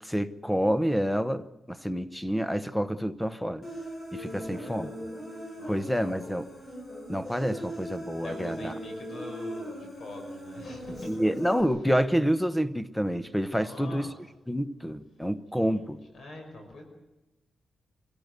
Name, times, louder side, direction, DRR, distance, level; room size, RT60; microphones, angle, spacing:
voice 1, 0.0-3.7 4.1-4.9 5.7-6.5 7.1-8.7 11.1-14.1 14.5-16.0, equal, 5° left, 0.9 m, -28 dB
Human voice, 3.6-11.6, equal, 35° left, 4.3 m, -39 dB
voice 2, 4.4-5.1 5.6-6.4 8.2-11.1 13.6-14.1 15.5-15.9 16.1-16.8, left 2 dB, 60° left, 5.6 m, -44 dB
24.5 x 17.0 x 7.9 m
wide cardioid pair, 125°, 0 cm